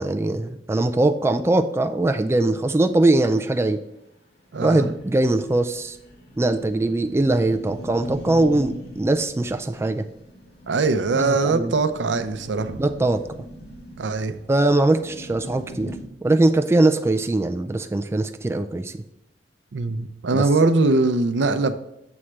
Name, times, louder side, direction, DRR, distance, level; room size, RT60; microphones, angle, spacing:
voice 1, 0.0-3.8 4.6-6.0 6.4-10.0 11.1-11.7 12.8-13.2 14.5-19.0 20.3-20.5, right 2 dB, 15° right, 0.3 m, -21 dB
sound 1, 3.8-3.9 4.1-4.2 4.5-16.0, equal, 60° left, 2.7 m, -41 dB
voice 2, 4.5-4.9 10.7-12.8 14.0-14.4 19.7-21.8, right 3 dB, 80° right, 0.6 m, -21 dB
7.1 x 3.3 x 6.1 m
head